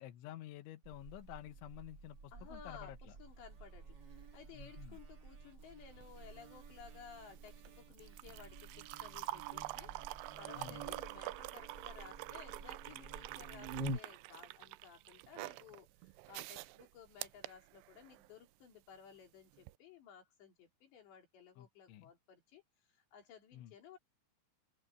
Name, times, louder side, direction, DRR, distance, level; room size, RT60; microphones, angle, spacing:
voice 1, 0.0-3.2 4.5-5.0 10.6-10.8 21.6-22.1 23.5-23.8, left 13 dB, 90° left, 3.6 m, -51 dB
Buzz, 0.8-14.0, right 2 dB, 50° right, 1.3 m, -50 dB
voice 2, 2.3-2.9 3.2-9.9 10.4-22.6 22.9-24.0, left 7 dB, 70° left, 5.9 m, -57 dB
sound 1, 6.0-18.3 19.6-19.7, right 19 dB, 80° right, 2.4 m, -47 dB
open air
omnidirectional pair, 5.2 m